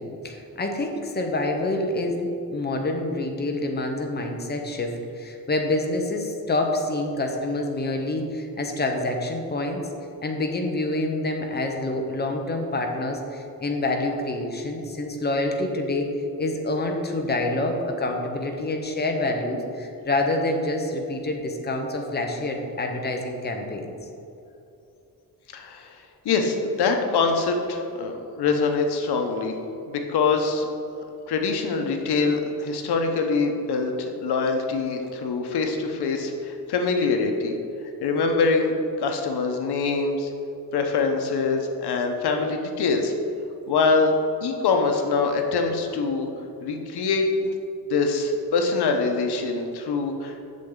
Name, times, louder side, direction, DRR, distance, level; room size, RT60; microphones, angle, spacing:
voice 1, 0.0-9.8 10.2-23.9, left 2 dB, 25° left, 3 dB, 0.8 m, -27 dB
voice 2, 25.5-26.0 26.2-29.6 29.9-30.7 31.3-37.5 38.0-40.3 40.7-43.1 43.7-44.1 44.4-46.3 46.6-47.3 47.9-50.4, left 4 dB, 90° left, 4 dB, 1.0 m, -24 dB
7.5 x 6.7 x 3.8 m, 2.7 s
wide cardioid pair, 160°, 38 cm